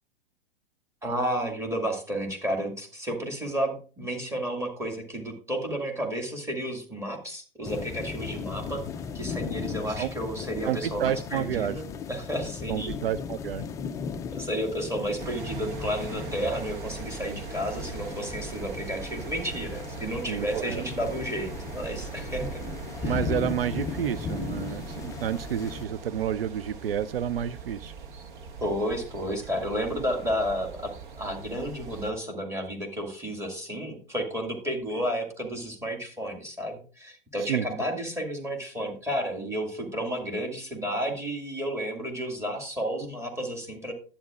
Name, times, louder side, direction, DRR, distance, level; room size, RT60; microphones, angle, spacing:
voice 1, 1.0-8.8 9.1-12.9 14.3-22.6 23.0-23.2 28.6-43.9, equal, 10° right, 3 dB, 2.0 m, -32 dB
sound 1, 7.6-25.8, left 6 dB, 10° left, 0.3 m, -37 dB
voice 2, 10.6-11.8 12.7-13.6 20.3-20.8 23.0-27.9 37.5-37.7, right 10 dB, 80° right, 16 dB, 0.5 m, -30 dB
sound 2, 15.2-32.1, right 5 dB, 60° right, 1.4 m, -40 dB
11.0 x 8.5 x 2.4 m, 0.40 s
figure-of-eight pair, 105°, 29 cm